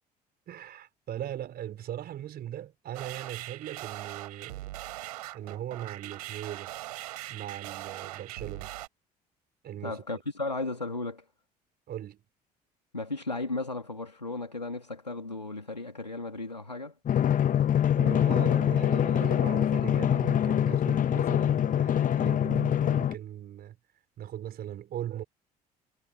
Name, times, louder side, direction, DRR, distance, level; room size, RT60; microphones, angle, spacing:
voice 1, 0.5-4.7 5.3-6.7 7.3-8.7 9.6-10.2 11.9-12.2 18.0-23.8 24.2-25.2, right 11 dB, 50° right, 5.4 m, -39 dB
sound 1, 2.9-8.9, right 16 dB, 70° right, 4.6 m, -41 dB
voice 2, 9.8-11.2 12.9-16.9, left 2 dB, 90° left, 2.9 m, -35 dB
Drum, 17.1-23.1, left 10 dB, 40° left, 1.3 m, -24 dB
figure-of-eight pair, 50°, 21 cm